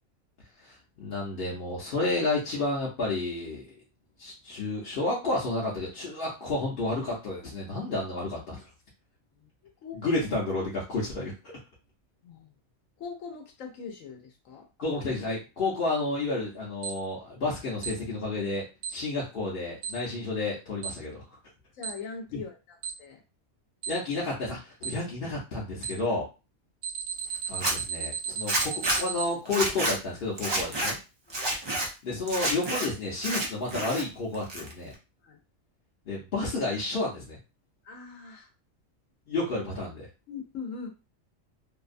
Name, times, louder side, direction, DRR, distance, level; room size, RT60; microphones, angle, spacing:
voice 1, 0.6-3.7 4.2-8.7 9.9-11.3 14.8-18.7 18.9-21.2 23.9-26.3 27.5-31.0 32.0-34.9 36.1-37.4 39.3-40.1, left 2 dB, 50° left, -5 dB, 0.8 m, -31 dB
voice 2, 9.8-10.2 12.2-12.6 13.0-14.7 21.7-23.2 31.3-31.5 35.2-35.4 37.8-38.5 40.3-40.9, left 5 dB, 90° left, 3 dB, 1.0 m, -41 dB
Alarm, 16.8-16.9 17.8-17.9 18.8-18.9 19.8-19.9 20.8-20.9 21.8-21.9 22.8-22.9 23.8-23.9 24.8-24.9 25.8-25.9 26.8-29.3, right 7 dB, 90° right, 1.0 m, -33 dB
Zipper (clothing), 27.5-27.7 28.5-29.0 29.5-29.9 30.4-30.9 31.3-31.9 32.3-32.9 33.2-34.0 34.3-34.9, right 1 dB, 35° right, 0.4 m, -29 dB
2.6 x 2.1 x 2.5 m, 0.28 s
omnidirectional pair, 1.3 m